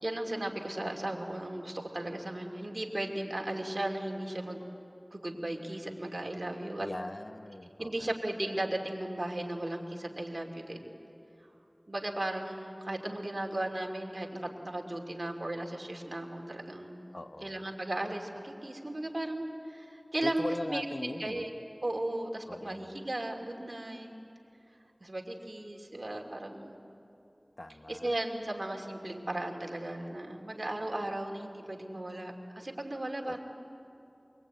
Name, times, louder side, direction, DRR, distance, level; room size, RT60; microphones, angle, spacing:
voice 1, 0.0-4.6 5.1-6.9 7.8-10.9 11.9-17.1 17.4-20.9 21.2-21.5 21.8-24.1 25.0-26.8 27.9-33.4, right 1 dB, 65° right, 1 dB, 2.8 m, -36 dB
voice 2, 6.8-8.1 17.1-17.6 20.2-21.4 22.5-22.9 27.6-28.2 33.2-33.4, left 1 dB, 60° left, 10 dB, 0.8 m, -40 dB
24.5 x 23.0 x 9.1 m, 2.9 s
wide cardioid pair, 45°, 0 cm